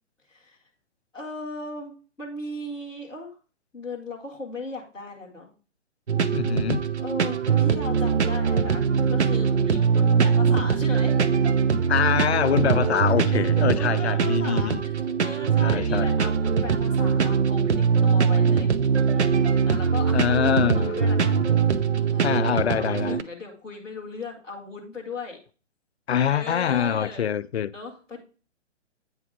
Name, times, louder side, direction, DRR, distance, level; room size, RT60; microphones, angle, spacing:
voice 1, 1.1-1.9 2.2-3.4 3.7-5.5 7.0-11.2 12.0-12.1 13.5-18.7 19.1-21.5 22.1-25.4 26.1-27.3 27.7-28.2, left 2 dB, ahead, 0.5 m, -37 dB
sound 1, 6.1-23.2, right 6 dB, 65° right, 0.7 m, -22 dB
voice 2, 6.3-6.9 11.9-14.8 15.6-16.1 20.1-21.1 22.2-23.2 26.1-27.7, left 8 dB, 60° left, 0.5 m, -24 dB
8.8 x 3.5 x 4.6 m
figure-of-eight pair, 130°, 37 cm